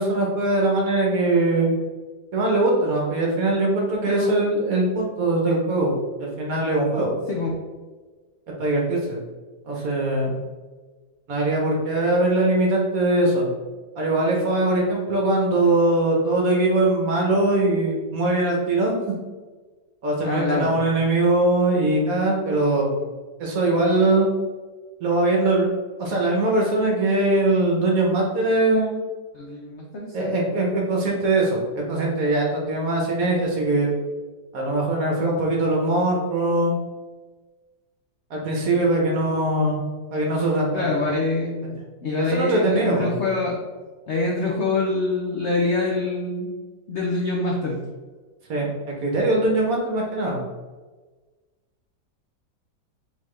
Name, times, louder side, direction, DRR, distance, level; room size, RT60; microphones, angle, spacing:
voice 1, 0.0-1.7 2.3-5.9 6.2-7.2 8.6-9.2 9.6-10.3 11.3-13.5 14.0-18.9 20.0-23.1 23.4-24.3 25.0-25.7 26.0-29.0 30.1-33.9 34.5-36.8 38.3-39.8 40.1-40.8 42.3-43.1 48.5-50.4, right 2 dB, 60° right, -1 dB, 1.1 m, -21 dB
voice 2, 20.2-20.8 29.3-30.3 40.4-41.8 42.0-43.6 44.1-46.5 46.9-47.8, left 3 dB, 75° left, -2 dB, 0.6 m, -25 dB
3.9 x 3.7 x 3.2 m, 1.3 s
omnidirectional pair, 2.0 m